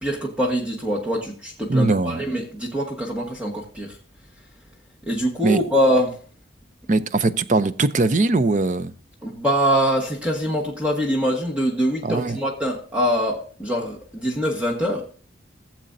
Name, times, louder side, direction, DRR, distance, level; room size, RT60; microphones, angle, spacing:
voice 1, 0.0-3.9 5.1-6.2 9.2-15.0, equal, 5° right, -2 dB, 1.3 m, -23 dB
voice 2, 1.7-2.2 5.4-5.6 6.9-8.9 12.0-12.4, right 2 dB, 40° right, 14 dB, 0.5 m, -20 dB
16.0 x 7.5 x 2.6 m, 0.42 s
head